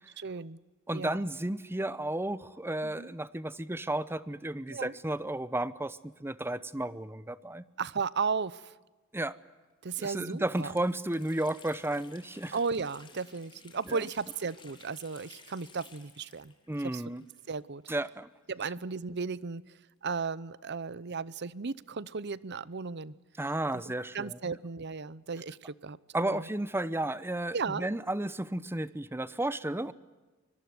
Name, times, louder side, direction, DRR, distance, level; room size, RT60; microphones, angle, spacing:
voice 1, 0.2-0.6 0.9-1.2 2.8-3.1 4.7-4.9 7.8-8.7 9.8-10.7 12.5-16.5 16.9-17.0 17.5-17.8 18.5-19.6 20.0-23.1 23.7-26.5 27.5-27.9, right 5 dB, 55° right, 20 dB, 0.8 m, -35 dB
voice 2, 0.9-7.6 9.1-9.4 10.0-12.5 13.9-14.0 16.7-17.2 17.9-18.3 23.4-24.6 26.1-29.9, right 1 dB, 10° right, 17 dB, 0.8 m, -33 dB
Water tap faucet, 9.6-9.7 10.1-17.8 18.1-18.2 19.0-20.6, left 5 dB, 25° left, 3.2 m, -57 dB
25.0 x 21.0 x 9.5 m, 1.2 s
head